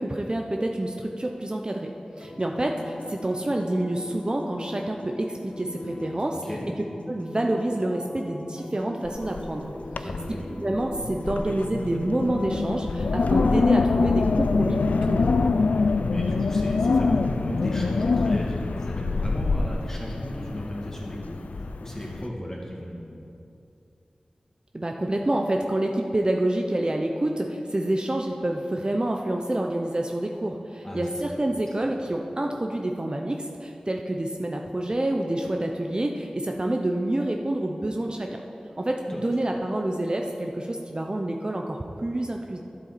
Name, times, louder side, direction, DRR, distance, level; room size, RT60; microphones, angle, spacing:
voice 1, 0.0-6.7 7.1-10.1 10.6-15.4 24.7-38.4 38.8-42.6, right 1 dB, 35° right, 2 dB, 0.6 m, -28 dB
sound 1, 2.2-14.8, left 2 dB, 60° left, 0.9 m, -41 dB
Wind, 9.1-9.5 9.9-10.4 10.8-22.2, left 4 dB, 90° left, 0.3 m, -25 dB
voice 2, 10.0-10.5 16.1-23.2 30.8-31.1 31.3-31.4 39.1-39.2, equal, 20° left, -4 dB, 2.3 m, -35 dB
11.5 x 7.3 x 4.2 m, 2.7 s
wide cardioid pair, 45°, 2 cm